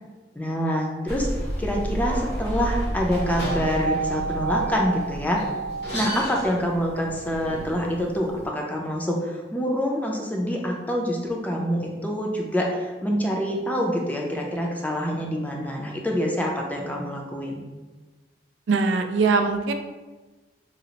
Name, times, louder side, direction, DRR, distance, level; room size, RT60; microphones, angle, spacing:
voice 1, 0.3-1.3 1.6-5.4 5.9-17.6, equal, 10° left, -1 dB, 0.4 m, -26 dB
sound 1, 1.1-8.5, right 2 dB, 60° left, 0.8 m, -30 dB
voice 2, 18.7-19.7, right 4 dB, 90° right, 6 dB, 0.4 m, -21 dB
4.9 x 2.0 x 2.8 m, 1.2 s
head